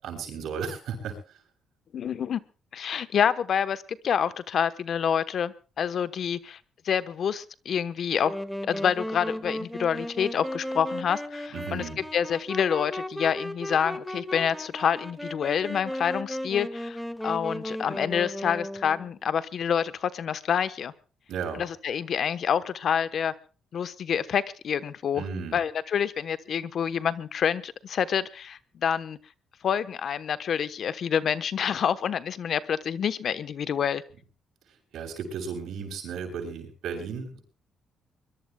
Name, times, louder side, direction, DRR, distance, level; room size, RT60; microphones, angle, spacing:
voice 1, 0.0-1.4 11.5-12.0 21.3-21.6 25.1-25.6 34.7-37.4, right 6 dB, 75° right, 4 dB, 6.8 m, -35 dB
voice 2, 1.9-2.4 2.7-6.6 6.8-8.4 8.6-11.8 12.1-20.9 21.6-23.3 23.7-25.2 25.5-29.2 29.6-34.0, left 8 dB, 60° left, 13 dB, 1.1 m, -27 dB
Wind instrument woodwind instrument, 8.2-19.1, left 1 dB, ahead, 1.5 m, -35 dB
23.5 x 22.0 x 2.3 m, 0.36 s
cardioid pair, 90°, 0 cm